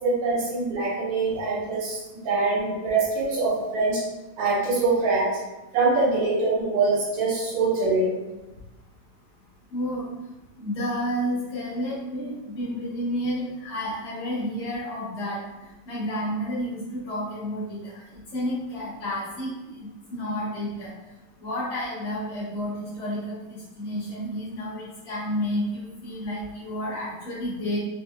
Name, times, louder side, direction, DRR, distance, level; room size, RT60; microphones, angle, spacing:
voice 1, 0.0-2.0 2.2-4.0 4.4-5.3 5.7-8.2, right 3 dB, 75° right, -7 dB, 2.7 m, -24 dB
voice 2, 9.7-10.1 10.6-15.4 15.9-17.8 18.3-20.9 21.4-27.8, equal, 65° left, -10 dB, 2.0 m, -30 dB
5.4 x 2.5 x 2.3 m, 1.0 s
omnidirectional pair, 4.0 m